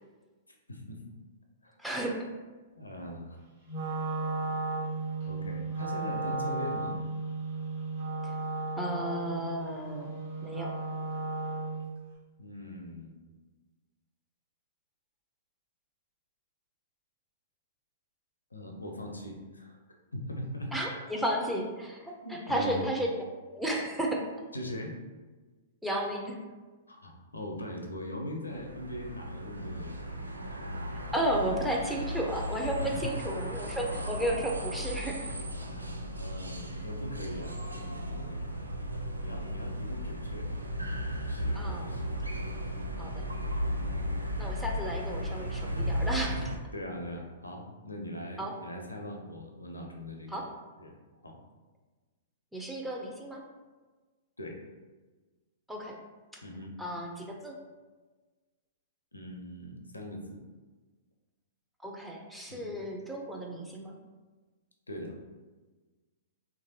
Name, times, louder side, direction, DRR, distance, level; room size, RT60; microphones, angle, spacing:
voice 1, 0.7-1.0 1.6-1.8 2.8-3.4 5.3-7.0 12.4-13.1 18.5-19.8 20.1-20.7 22.2-22.8 24.5-25.0 26.9-30.1 32.8-33.1 35.6-38.6 39.2-40.6 40.9-42.2 43.0-43.1 43.8-44.2 46.7-50.4 50.8-51.0 51.2-51.4 54.4-54.6 56.4-56.8 59.1-60.4 62.5-62.8 64.9-65.2, left 1 dB, 85° left, 2 dB, 0.5 m, -41 dB
voice 2, 1.8-2.2 8.2-8.3 8.8-10.1 10.4-10.8 20.7-23.1 23.5-24.3 25.8-26.4 31.1-35.3 41.5-42.0 43.0-43.3 44.4-46.5 48.4-48.5 50.3-50.5 52.5-53.4 55.7-56.0 56.3-56.4 56.8-57.6 61.8-64.0, right 1 dB, 5° right, -1 dB, 0.4 m, -33 dB
Wind instrument woodwind instrument, 3.7-11.9, right 3 dB, 55° right, 1.3 m, -35 dB
sound 1, 28.5-46.6, equal, 85° right, 0.3 m, -35 dB
3.0 x 2.5 x 2.7 m, 1.3 s
figure-of-eight pair, 110°, 0 cm